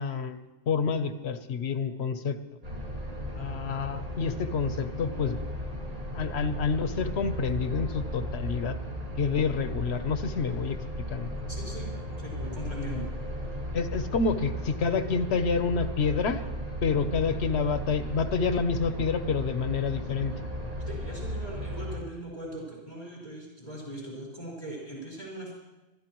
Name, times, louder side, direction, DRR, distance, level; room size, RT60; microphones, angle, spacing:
voice 1, 0.0-2.4 3.3-5.4 6.1-8.8 9.2-10.8 11.1-11.4 13.7-16.4 16.8-20.3, left 5 dB, 90° left, 10 dB, 1.1 m, -28 dB
sound 1, 2.6-22.0, equal, 35° right, 2.2 m, -35 dB
voice 2, 4.7-5.4 11.5-13.1 20.8-25.5, right 1 dB, 45° left, -3 dB, 4.6 m, -40 dB
24.0 x 13.0 x 3.0 m, 1.1 s
omnidirectional pair, 1.1 m